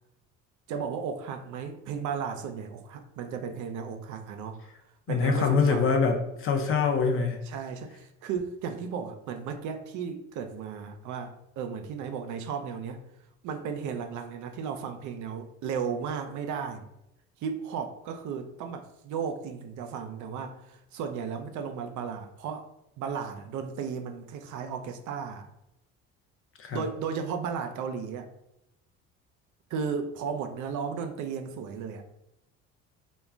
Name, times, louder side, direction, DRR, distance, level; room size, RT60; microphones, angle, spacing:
voice 1, 0.7-4.6 5.1-6.0 7.4-13.0 13.4-16.9 17.4-22.7 23.0-25.5 26.7-28.3 29.7-32.0, right 6 dB, 50° right, 6 dB, 0.5 m, -35 dB
voice 2, 5.1-7.4 26.6-26.8, left 5 dB, 35° left, 3 dB, 0.5 m, -24 dB
2.2 x 2.2 x 3.5 m, 0.86 s
hypercardioid pair, 55°, 38 cm